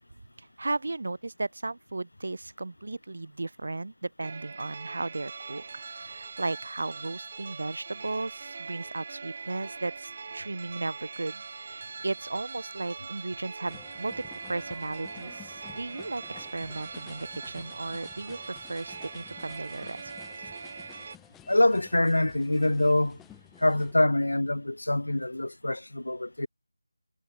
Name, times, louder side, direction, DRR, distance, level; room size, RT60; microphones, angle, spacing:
voice 1, 0.4-20.0, right 2 dB, 60° right, 0.4 m, -35 dB
sound 1, 4.2-21.2, right 4 dB, 40° right, 1.7 m, -42 dB
sound 2, 8.7-9.2 9.7-10.2 10.6-11.2 11.6-12.2 12.6-13.1 13.6-14.1 14.5-15.1 15.5-16.0 16.5-17.0 17.5-18.0, left 8 dB, 25° left, 4.4 m, -70 dB
sound 3, 13.7-23.9, left 11 dB, 5° left, 0.5 m, -52 dB
voice 2, 21.5-23.2 23.6-26.5, left 1 dB, 75° left, 0.5 m, -25 dB
figure-of-eight pair, 165°, 0 cm